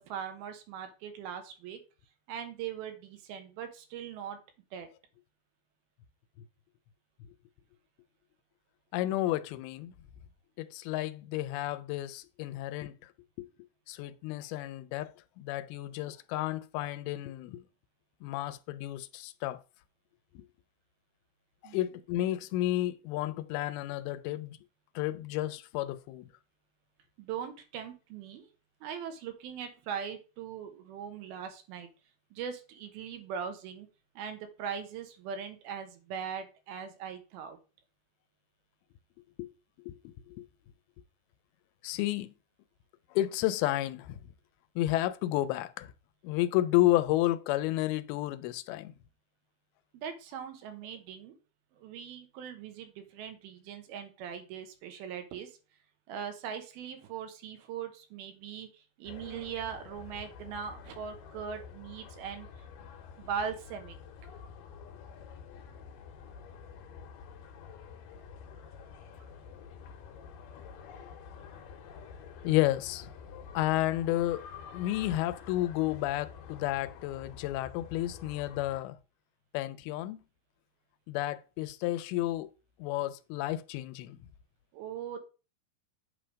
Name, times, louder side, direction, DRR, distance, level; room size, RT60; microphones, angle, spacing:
voice 1, 0.0-1.8 2.3-4.4 4.7-4.9 21.6-21.8 27.2-28.5 28.8-31.9 32.3-33.9 34.2-37.6 49.9-51.3 51.8-55.6 56.1-62.7 63.2-64.0 84.7-85.2, right 7 dB, 80° right, 2.8 m, -40 dB
voice 2, 8.9-9.9 10.6-13.1 13.4-13.5 13.9-17.6 18.2-19.6 20.4-20.5 21.6-24.6 25.0-26.3 39.4-39.5 39.9-40.5 41.8-42.3 43.1-44.2 44.8-45.9 46.2-48.9 72.4-73.1 73.5-79.0 79.5-80.2 81.1-82.5 82.8-84.2, left 15 dB, 90° left, 2.5 m, -31 dB
sound 1, 59.0-78.8, left 6 dB, 70° left, 2.4 m, -48 dB
8.3 x 3.4 x 5.0 m
omnidirectional pair, 4.3 m